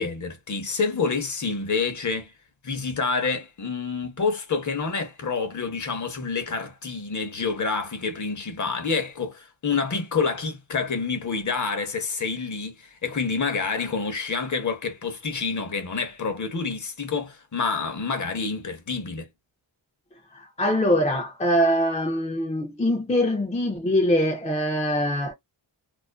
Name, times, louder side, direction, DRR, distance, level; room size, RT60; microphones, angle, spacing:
voice 1, 0.0-2.3 2.6-19.3, left 4 dB, 40° left, 0.7 m, -28 dB
voice 2, 20.3-25.3, equal, 15° left, 0.3 m, -23 dB
2.4 x 2.3 x 2.2 m
wide cardioid pair, 135°, 49 cm